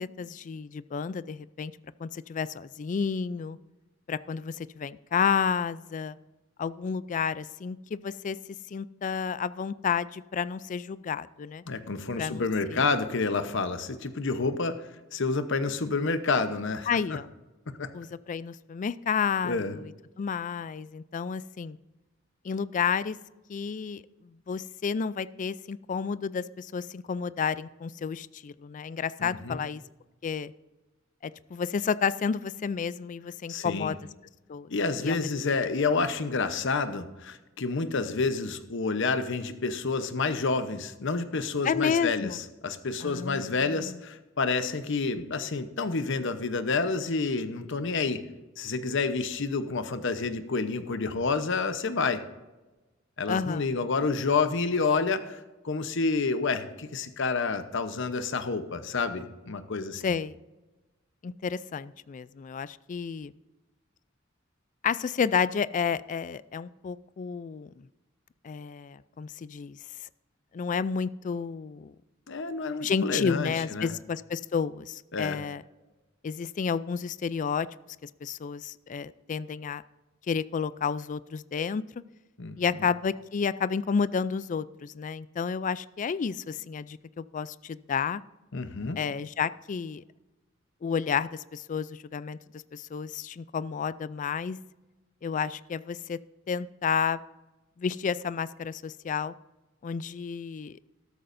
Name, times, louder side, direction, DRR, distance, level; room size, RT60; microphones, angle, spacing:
voice 1, 0.0-1.7 2.0-3.6 4.1-6.2 6.6-8.4 8.7-11.6 12.2-12.9 16.9-17.3 17.9-21.8 22.4-23.2 23.5-29.8 30.2-30.5 31.2-34.0 34.5-34.7 35.0-35.3 41.6-42.4 43.0-44.0 53.3-53.7 60.0-60.4 61.2-63.3 64.8-67.9 68.4-69.8 70.5-71.9 72.8-75.6 76.2-77.7 78.0-79.8 80.3-81.8 82.6-88.2 89.0-90.0 90.8-92.4 92.7-94.6 95.2-96.2 96.5-97.2 97.8-99.3 99.8-100.8, left 6 dB, 40° left, 17 dB, 0.3 m, -31 dB
voice 2, 11.7-14.8 15.1-16.9 17.7-17.9 19.4-19.8 29.2-29.6 33.5-33.9 34.7-48.2 48.6-52.2 53.2-60.0 72.3-73.9 75.1-75.4 82.4-82.6 88.5-89.0, left 4 dB, 65° left, 10 dB, 0.9 m, -29 dB
13.0 x 12.5 x 2.6 m, 1.1 s
head